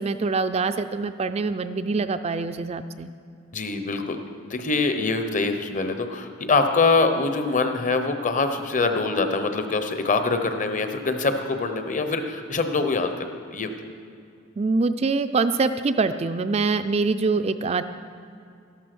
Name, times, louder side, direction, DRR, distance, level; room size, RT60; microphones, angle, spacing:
voice 1, 0.0-3.1 14.6-17.8, right 4 dB, 30° right, 10 dB, 0.4 m, -24 dB
voice 2, 3.5-4.2 4.5-13.7, left 3 dB, 40° left, 7 dB, 1.0 m, -24 dB
13.0 x 11.5 x 6.1 m, 2.5 s
head